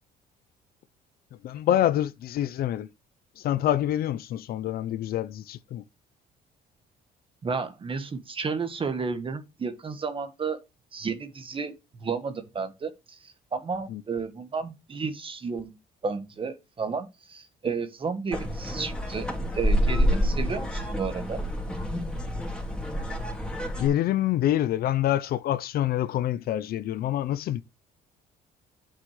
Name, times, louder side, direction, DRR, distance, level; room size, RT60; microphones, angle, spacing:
voice 1, 1.4-2.9 3.4-5.8 13.9-14.0 23.6-27.6, left 12 dB, 65° left, 0.6 m, -26 dB
voice 2, 7.4-10.6 10.9-15.7 16.0-19.3 19.5-21.4, right 5 dB, 30° right, 1.5 m, -32 dB
sound 1, 18.3-23.9, equal, 5° left, 2.9 m, -28 dB
9.0 x 7.7 x 3.2 m
cardioid pair, 110°, 17 cm